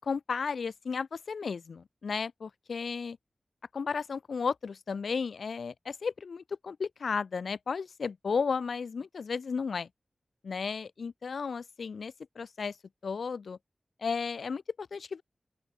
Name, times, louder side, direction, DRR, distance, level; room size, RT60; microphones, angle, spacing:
voice 1, 0.0-3.2 3.7-9.9 10.4-12.7 13.0-13.6 14.0-15.2, left 5 dB, 85° left, 7.2 m, -34 dB
open air
cardioid pair, 45°, 0 cm